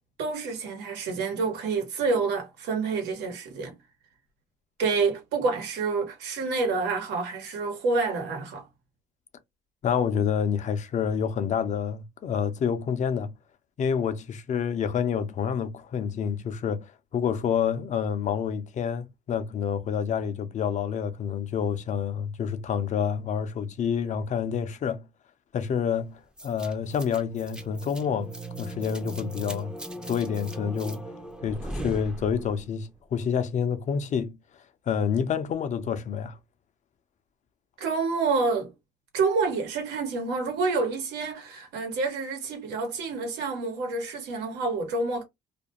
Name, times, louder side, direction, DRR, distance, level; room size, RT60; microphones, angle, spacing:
voice 1, 0.2-3.7 4.8-8.6 37.8-38.7 39.1-45.2, right 4 dB, 90° right, 1.1 m, -28 dB
voice 2, 9.8-13.3 13.8-25.1 25.5-28.3 28.6-29.7 30.1-31.0 31.4-34.4 34.9-36.4, left 7 dB, 45° left, 0.5 m, -28 dB
sound 1, 26.4-32.7, right 1 dB, 5° right, 0.5 m, -38 dB
2.5 x 2.2 x 2.9 m
cardioid pair, 110°, 17 cm